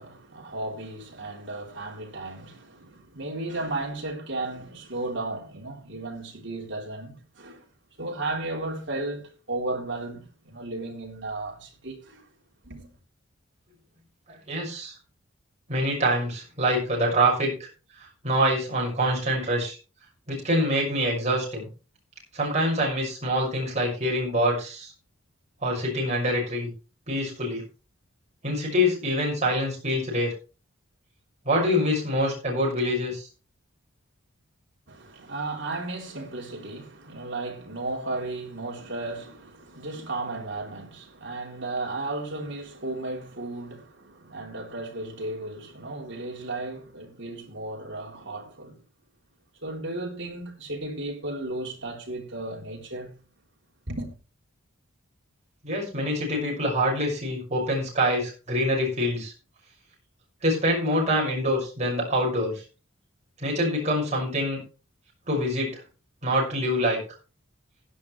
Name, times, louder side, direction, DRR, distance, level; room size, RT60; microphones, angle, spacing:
voice 1, 0.0-7.6 8.0-12.3 12.6-12.9 34.9-48.8 49.6-53.1 53.9-54.1, right 2 dB, 55° right, 3.6 m, -34 dB
voice 2, 14.3-14.9 15.7-17.5 18.2-19.8 20.3-21.7 22.3-24.9 25.6-26.7 27.1-27.6 28.4-30.3 31.4-33.3 55.6-59.3 60.4-62.6 63.4-64.6 65.3-65.8 66.2-67.0, equal, 30° right, 6.3 m, -25 dB
16.5 x 10.0 x 3.3 m
head